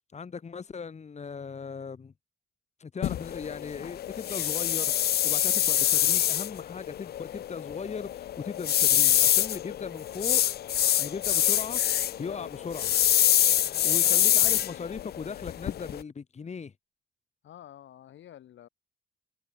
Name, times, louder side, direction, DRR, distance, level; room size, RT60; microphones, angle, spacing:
voice 1, 0.1-2.1 2.8-10.4 11.0-11.8 12.2-12.9 13.8-16.7, left 5 dB, 35° left, 2.0 m, -38 dB
sound 1, 3.0-16.0, left 11 dB, 55° left, 0.5 m, -26 dB
voice 2, 9.3-10.0 11.6-11.8 12.2-12.8 13.4-14.7 15.2-15.3 17.4-18.7, left 11 dB, 70° left, 3.8 m, -49 dB
cardioid pair, 90°, 20 cm